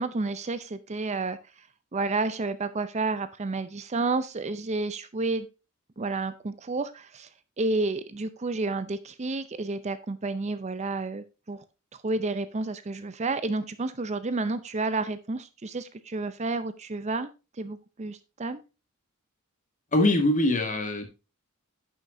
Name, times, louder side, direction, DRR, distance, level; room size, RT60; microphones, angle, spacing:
voice 1, 0.0-1.4 1.9-5.5 6.0-7.3 7.6-11.6 12.0-17.3 17.6-18.6, right 3 dB, 30° right, 13 dB, 0.5 m, -30 dB
voice 2, 19.9-21.0, left 1 dB, 35° left, 5 dB, 1.7 m, -23 dB
10.0 x 7.5 x 2.7 m, 0.29 s
head